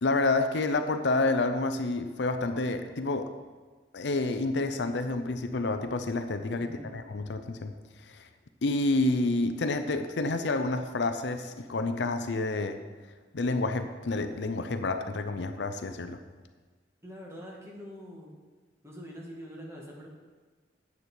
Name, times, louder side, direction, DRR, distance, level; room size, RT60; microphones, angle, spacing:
voice 1, 0.0-3.3 3.9-7.7 8.1-8.2 8.6-12.8 13.3-16.2, left 2 dB, 75° left, 8 dB, 0.6 m, -29 dB
voice 2, 6.6-6.9 17.0-18.3 18.8-20.1, equal, 15° right, -2 dB, 1.9 m, -44 dB
9.5 x 8.2 x 4.5 m, 1.4 s
head